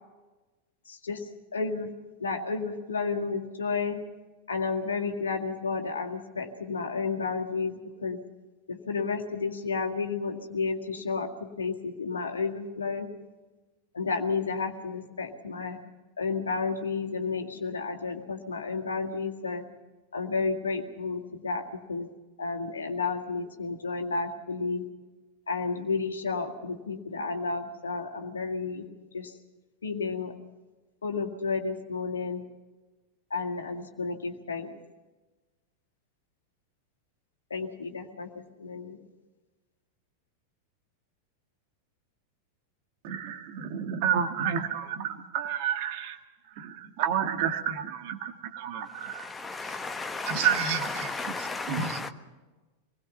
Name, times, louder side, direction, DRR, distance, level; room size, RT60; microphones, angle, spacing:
voice 1, 0.9-1.9 2.2-4.0 4.5-8.2 8.7-13.1 13.9-15.8 16.2-19.6 20.1-22.1 22.4-24.9 25.5-28.9 29.1-29.4 29.8-30.3 31.0-32.4 33.3-34.7 37.5-39.0, left 4 dB, 70° left, 3 dB, 2.0 m, -32 dB
voice 2, 43.0-46.2 46.6-49.3 49.6-49.8 50.2-52.1, right 8 dB, 45° right, 5 dB, 1.9 m, -30 dB
voice 3, 49.0-52.1, left 3 dB, 15° left, 8 dB, 1.2 m, -35 dB
26.0 x 20.5 x 5.7 m, 1.2 s
figure-of-eight pair, 90°, 0 cm